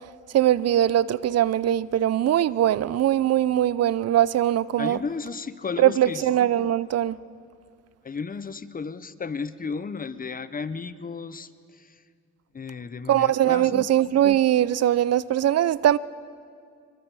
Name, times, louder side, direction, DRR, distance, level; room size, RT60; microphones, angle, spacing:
voice 1, 0.3-5.0 5.8-7.2 13.1-16.0, right 12 dB, 55° right, 0.5 m, -21 dB
voice 2, 4.8-6.3 8.0-12.0 12.5-13.9, left 5 dB, 30° left, 0.8 m, -34 dB
25.5 x 22.5 x 4.8 m
cardioid pair, 90°, 30 cm